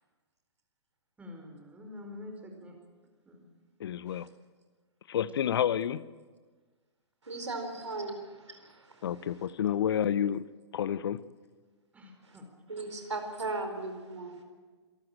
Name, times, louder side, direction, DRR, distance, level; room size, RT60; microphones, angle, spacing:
voice 1, 1.2-2.9 3.2-3.4 5.3-5.4 11.9-12.5, left 2 dB, 10° right, 3 dB, 4.6 m, -47 dB
voice 2, 3.8-4.3 5.1-6.0 9.0-10.5 10.7-11.2, left 9 dB, 55° left, 19 dB, 0.7 m, -29 dB
voice 3, 7.2-9.5 12.2-12.4 12.7-14.4, right 2 dB, 80° right, 6 dB, 4.4 m, -38 dB
26.5 x 13.5 x 8.9 m, 1.4 s
figure-of-eight pair, 120°, 15 cm